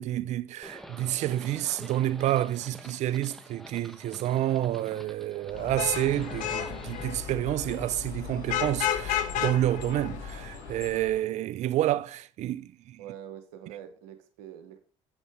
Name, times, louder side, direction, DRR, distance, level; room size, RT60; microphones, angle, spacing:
voice 1, 0.0-13.0, right 13 dB, 55° right, 0.4 m, -29 dB
Livestock farm animals working animals, 0.6-7.0, equal, ahead, 0.9 m, -47 dB
Vehicle horn car horn honking / Traffic noise roadway noise, 5.5-10.8, left 10 dB, 65° left, 0.6 m, -33 dB
sound 1, 5.6-11.2, left 3 dB, 85° left, 3.4 m, -45 dB
voice 2, 13.0-14.8, right 10 dB, 75° right, 0.9 m, -44 dB
7.4 x 5.4 x 3.5 m
hypercardioid pair, 60°, 14 cm